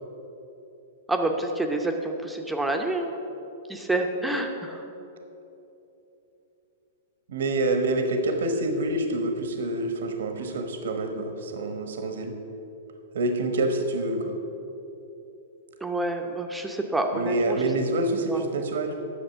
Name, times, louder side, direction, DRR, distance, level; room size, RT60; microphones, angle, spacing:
voice 1, 1.1-3.1 3.7-4.8 15.8-17.6 18.3-18.4, right 2 dB, 5° right, 3 dB, 0.8 m, -28 dB
voice 2, 7.3-12.4 13.1-14.4 17.1-19.0, right 2 dB, 75° right, 6 dB, 1.0 m, -27 dB
8.7 x 6.6 x 6.7 m, 3.0 s
hypercardioid pair, 125°, 0 cm